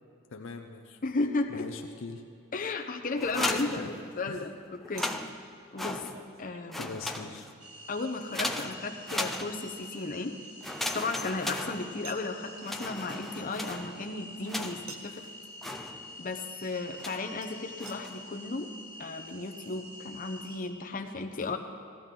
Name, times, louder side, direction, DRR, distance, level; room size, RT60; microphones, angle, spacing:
voice 1, 0.3-1.0 1.5-2.2 3.6-3.9 4.3-4.4 6.8-7.5, left 4 dB, 65° left, 5 dB, 0.7 m, -41 dB
voice 2, 1.0-1.7 2.5-5.1 5.7-6.0 6.4-6.9 7.9-10.4 10.9-15.3 16.2-18.7 19.0-21.6, left 3 dB, 40° left, 4 dB, 0.9 m, -34 dB
Chink clink, 2.2-2.3 5.0-8.2 9.7-11.4 12.0-12.3 14.9-15.3 17.4-17.5 17.9-18.0 18.6-18.7 18.9-19.0, right 6 dB, 70° right, 1.0 m, -51 dB
sound 1, 3.2-4.4 4.8-6.4 6.7-7.7 8.3-9.9 10.6-12.3 12.6-15.0 15.6-16.3 17.0-17.4 17.8-18.3, left 1 dB, ahead, 0.5 m, -37 dB
sound 2, 7.6-20.6, left 1 dB, 20° right, 3.1 m, -47 dB
15.0 x 14.5 x 3.8 m, 2.6 s
head